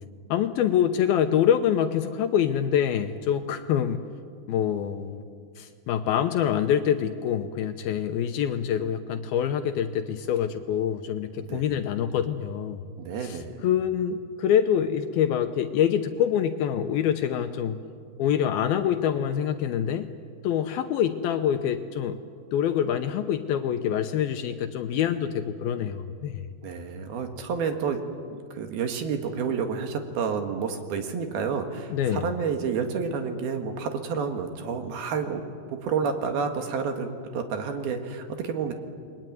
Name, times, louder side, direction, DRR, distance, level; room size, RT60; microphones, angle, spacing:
voice 1, 0.3-4.0 4.5-5.2 5.6-12.8 13.2-17.8 18.2-20.1 20.4-22.2 22.5-26.5 31.9-32.3, left 9 dB, 75° left, 8 dB, 2.5 m, -25 dB
voice 2, 11.4-11.8 13.0-13.7 26.6-28.0 28.3-35.4 35.7-38.7, right 6 dB, 65° right, 5 dB, 3.4 m, -30 dB
29.0 x 22.0 x 9.3 m, 2.2 s
omnidirectional pair, 4.9 m